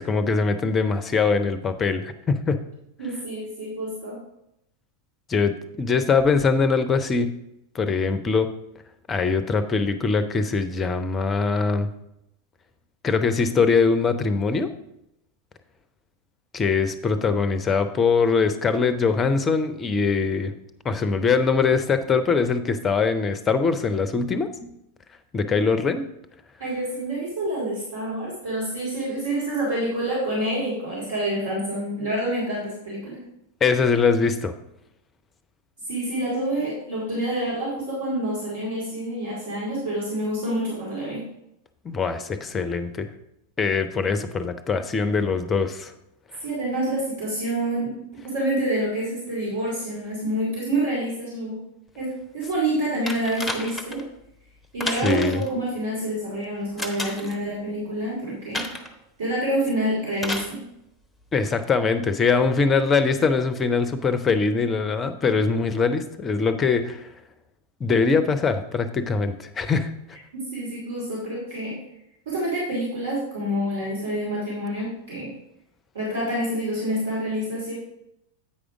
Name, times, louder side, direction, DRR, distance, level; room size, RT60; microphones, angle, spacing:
voice 1, 0.0-2.6 5.3-7.3 7.7-8.5 9.1-11.9 13.0-14.7 16.5-20.5 20.8-24.7 25.3-26.0 33.6-34.5 41.8-43.1 43.6-45.9 55.0-55.4 61.3-67.1 67.8-69.9, left 4 dB, 20° left, 11 dB, 0.6 m, -22 dB
voice 2, 3.0-4.2 26.6-33.2 35.9-41.2 46.4-47.9 48.2-51.6 52.0-54.0 54.7-58.7 59.2-60.6 70.3-71.8 72.3-75.3 75.9-77.7, right 1 dB, 60° right, -6 dB, 2.5 m, -27 dB
sound 1, 53.1-54.0 54.8-55.5 56.8-57.4 58.5-59.0 60.2-60.6 61.6-61.7, left 1 dB, ahead, 1.0 m, -31 dB
8.7 x 5.0 x 4.8 m, 0.81 s
figure-of-eight pair, 90°, 0 cm